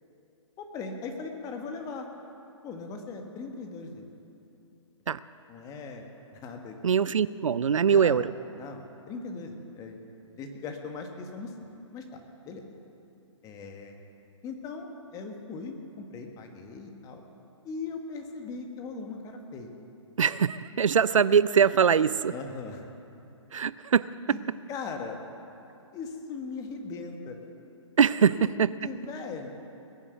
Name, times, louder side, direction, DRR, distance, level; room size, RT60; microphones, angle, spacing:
voice 1, 0.6-2.1 2.6-4.1 5.5-6.7 7.9-8.2 8.5-10.0 10.4-12.6 13.4-13.9 14.4-17.2 17.6-19.7 22.3-22.9 24.3-24.4 24.7-25.2 25.9-27.4 28.4-28.5 28.8-29.5, left 4 dB, 20° left, 4 dB, 1.5 m, -39 dB
voice 2, 6.8-8.3 20.2-22.3 23.5-24.4 28.0-28.7, right 7 dB, 75° right, 17 dB, 0.5 m, -22 dB
20.5 x 7.5 x 8.1 m, 2.8 s
figure-of-eight pair, 130°, 17 cm